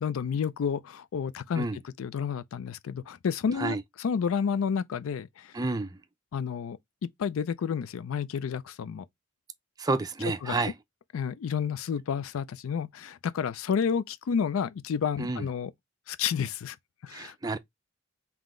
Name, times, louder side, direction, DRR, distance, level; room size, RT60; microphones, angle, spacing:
voice 1, 0.0-5.5 6.3-6.8 7.2-9.0 10.4-10.6 11.1-15.7 16.1-16.8 17.0-17.3, left 7 dB, 90° left, 0.4 m, -30 dB
voice 2, 5.5-5.9 9.8-10.7 15.2-15.4 17.1-17.6, right 3 dB, 20° right, 0.4 m, -29 dB
3.8 x 2.9 x 3.6 m
head